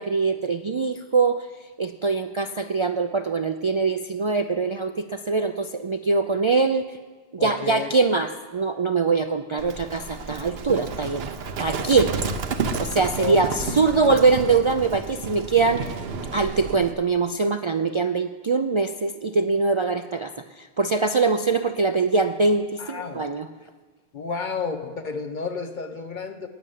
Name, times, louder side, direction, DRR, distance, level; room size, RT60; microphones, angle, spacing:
voice 1, 0.0-1.5 1.8-6.9 7.3-11.3 11.6-12.2 12.8-15.8 16.3-23.5, right 4 dB, 40° right, 8 dB, 0.4 m, -23 dB
voice 2, 7.4-7.9 13.2-13.8 22.8-23.3 24.1-26.5, left 5 dB, 50° left, 7 dB, 1.1 m, -31 dB
Livestock farm animals working animals, 9.6-16.9, right 4 dB, 75° right, 1.0 m, -31 dB
12.0 x 9.3 x 9.3 m, 1.4 s
omnidirectional pair, 1.0 m